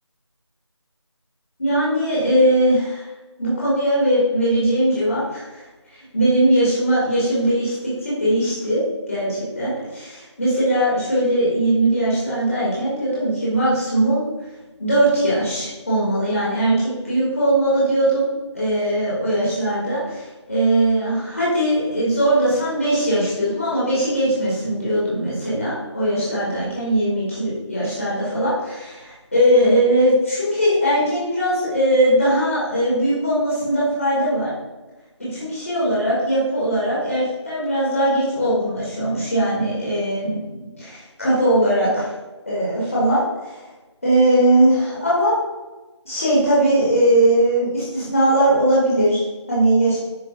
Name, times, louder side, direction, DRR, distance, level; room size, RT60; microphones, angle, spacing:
voice 1, 1.6-3.0 3.4-5.6 6.1-8.8 9.1-14.2 14.8-16.7 17.0-18.3 18.5-34.5 35.2-42.1 42.5-43.6 44.0-45.3 46.0-50.0, right 1 dB, 30° left, -8 dB, 2.5 m, -20 dB
9.6 x 6.2 x 2.6 m, 1.2 s
figure-of-eight pair, 180°, 15 cm